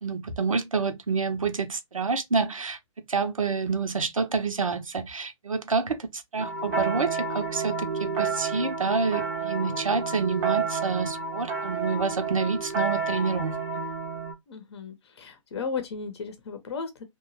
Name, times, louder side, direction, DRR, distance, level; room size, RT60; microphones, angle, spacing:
voice 1, 0.0-2.8 3.1-13.8, right 4 dB, 80° right, 0.6 m, -28 dB
sound 1, 6.4-14.3, right 4 dB, 25° right, 0.5 m, -30 dB
voice 2, 14.5-17.0, left 5 dB, 50° left, 0.7 m, -35 dB
2.9 x 2.2 x 2.8 m
figure-of-eight pair, 125°, 17 cm